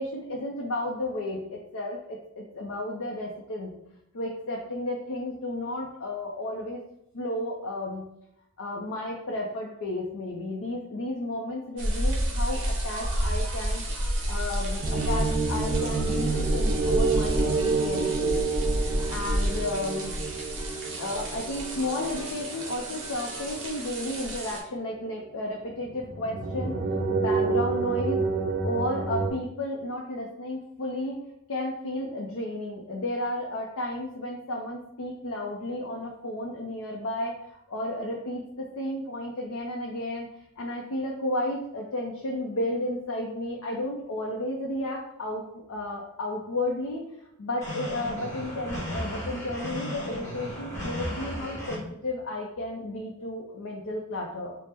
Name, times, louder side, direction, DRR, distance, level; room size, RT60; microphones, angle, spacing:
voice 1, 0.0-3.7 4.1-6.8 7.1-8.1 8.6-13.8 14.3-18.4 19.1-20.2 20.9-26.8 27.1-28.2 28.6-31.2 31.5-40.3 40.6-47.1 47.4-54.5, left 1 dB, 65° left, -1 dB, 0.5 m, -33 dB
sound 1, 11.8-24.6, equal, 60° right, 0.8 m, -30 dB
sound 2, 14.8-24.5 25.0-25.1 25.7-29.3, right 4 dB, 40° right, 0.4 m, -29 dB
sound 3, 47.6-51.7, left 1 dB, 15° left, 1.1 m, -35 dB
4.2 x 2.0 x 3.4 m, 0.80 s
head